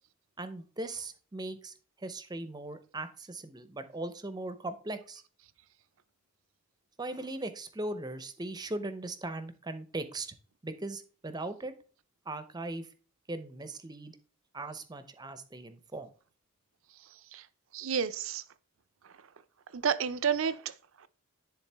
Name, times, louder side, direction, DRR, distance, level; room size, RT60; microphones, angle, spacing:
voice 1, 0.4-5.2 7.0-10.3 10.6-11.7 12.3-12.9 13.3-14.1 14.5-16.1, right 2 dB, 20° right, 0.6 m, -39 dB
voice 2, 17.7-18.4 19.7-20.7 21.0-21.1, right 7 dB, 70° right, 0.5 m, -30 dB
10.0 x 3.7 x 3.4 m
head